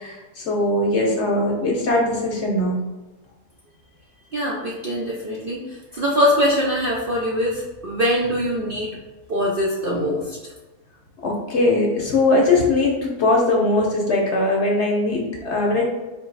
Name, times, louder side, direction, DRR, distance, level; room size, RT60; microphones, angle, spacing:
voice 1, 0.0-2.8 11.2-15.8, left 2 dB, 55° left, -1 dB, 1.0 m, -20 dB
voice 2, 4.3-5.6 5.9-8.9 9.3-10.4, equal, 55° right, -4 dB, 0.6 m, -22 dB
3.8 x 2.9 x 4.0 m, 1.1 s
omnidirectional pair, 1.6 m